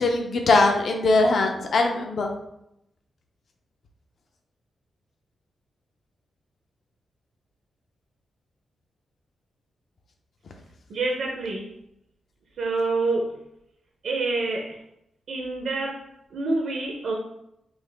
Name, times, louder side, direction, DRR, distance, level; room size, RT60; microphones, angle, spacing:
voice 1, 0.0-2.3, left 3 dB, 50° left, 3 dB, 0.6 m, -21 dB
voice 2, 10.9-11.7 12.6-13.3 14.0-14.8 15.3-17.1, right 3 dB, 80° right, 0 dB, 0.6 m, -27 dB
3.9 x 2.8 x 3.3 m, 0.81 s
wide cardioid pair, 155°, 0 cm